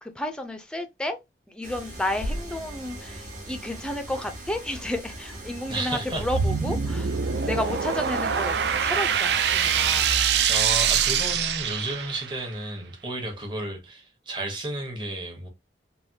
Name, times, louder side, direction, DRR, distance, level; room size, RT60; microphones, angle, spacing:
voice 1, 0.0-1.2 1.5-7.2 7.4-10.2, left 1 dB, 5° left, 0.4 m, -32 dB
sound 1, 1.6-10.2, right 1 dB, 50° right, 1.1 m, -41 dB
sound 2, 2.2-4.3, equal, 70° left, 0.4 m, -37 dB
voice 2, 5.7-6.3 10.5-15.5, right 1 dB, 25° right, 0.9 m, -32 dB
sound 3, 6.1-12.4, right 7 dB, 70° right, 0.4 m, -24 dB
3.3 x 2.2 x 2.7 m
head